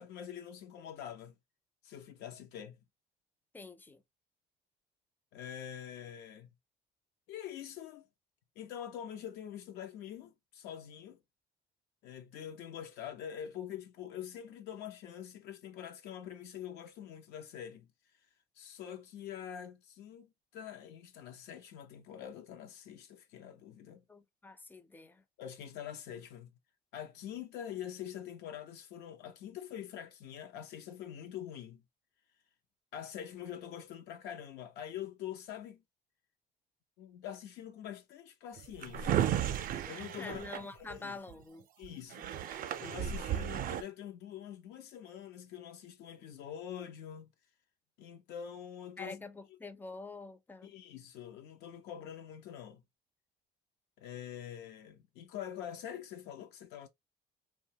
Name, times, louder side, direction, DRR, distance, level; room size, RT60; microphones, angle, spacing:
voice 1, 0.0-1.4 1.8-2.8 5.3-6.5 7.3-8.1 8.6-11.2 12.0-17.9 18.6-24.0 25.4-26.5 26.9-31.8 32.9-35.8 37.0-39.3 39.8-40.4 40.7-41.1 41.8-42.3 42.8-47.3 48.0-49.2 50.6-52.8 54.0-56.9, left 9 dB, 80° left, 0.5 m, -45 dB
voice 2, 3.5-4.0 24.1-25.2 40.2-41.7 49.0-50.7, left 3 dB, 10° left, 0.4 m, -46 dB
Drawer open or close, 38.6-41.3 41.8-41.9 42.1-43.8, right 10 dB, 55° right, 0.4 m, -34 dB
2.7 x 2.1 x 2.7 m
cardioid pair, 110°, 17 cm